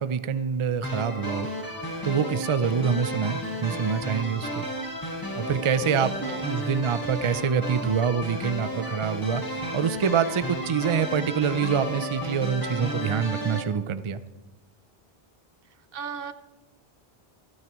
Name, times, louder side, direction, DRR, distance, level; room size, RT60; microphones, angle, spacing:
voice 1, 0.0-1.5 2.0-4.7 5.4-6.1 6.5-14.2, right 7 dB, 50° right, 13 dB, 0.4 m, -26 dB
sound 1, 0.8-13.6, equal, 20° left, 1.7 m, -33 dB
voice 2, 5.7-6.4 15.9-16.3, right 7 dB, 65° right, 12 dB, 0.8 m, -36 dB
27.0 x 9.5 x 3.0 m, 1.2 s
omnidirectional pair, 1.0 m